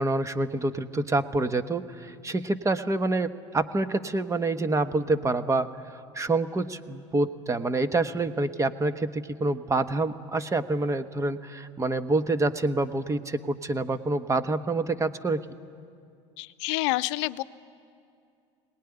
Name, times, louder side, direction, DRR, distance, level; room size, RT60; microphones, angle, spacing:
voice 1, 0.0-15.4, right 2 dB, 20° right, 11 dB, 1.1 m, -27 dB
voice 2, 16.4-17.4, left 19 dB, 70° left, 15 dB, 0.7 m, -28 dB
23.0 x 19.0 x 9.9 m, 2.4 s
hypercardioid pair, 85°, 15 cm